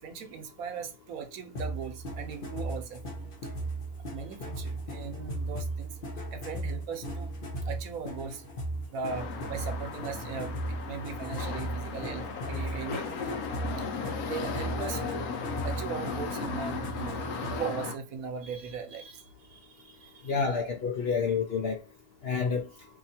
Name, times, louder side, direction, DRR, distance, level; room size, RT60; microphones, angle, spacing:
voice 1, 0.0-3.0 4.1-6.0 6.3-7.4 7.6-8.4 8.9-13.4 13.8-15.3 15.6-17.1 17.4-20.7 22.2-22.4, right 5 dB, 75° right, 1.1 m, -39 dB
sound 1, 1.5-17.7, right 1 dB, 40° left, 1.1 m, -37 dB
sound 2, 9.1-18.0, left 5 dB, 75° left, 1.1 m, -36 dB
voice 2, 20.3-21.8 22.2-22.7, left 5 dB, 60° left, 0.6 m, -28 dB
2.9 x 2.6 x 4.1 m
omnidirectional pair, 1.6 m